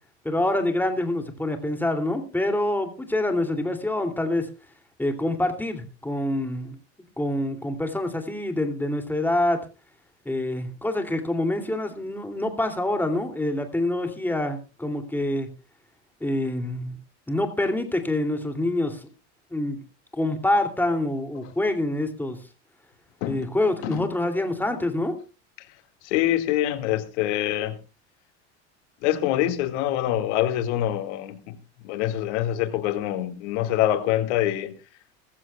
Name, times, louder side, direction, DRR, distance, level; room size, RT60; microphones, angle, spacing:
voice 1, 0.2-4.5 5.0-6.8 7.2-9.6 10.2-15.5 16.2-17.0 17.3-19.1 19.5-19.8 20.1-22.4 23.3-25.2, left 1 dB, 5° left, 2.8 m, -26 dB
voice 2, 26.0-27.8 29.0-31.6 31.8-34.7, left 13 dB, 75° left, 2.2 m, -25 dB
20.5 x 14.5 x 2.3 m
supercardioid pair, 115°, 35 cm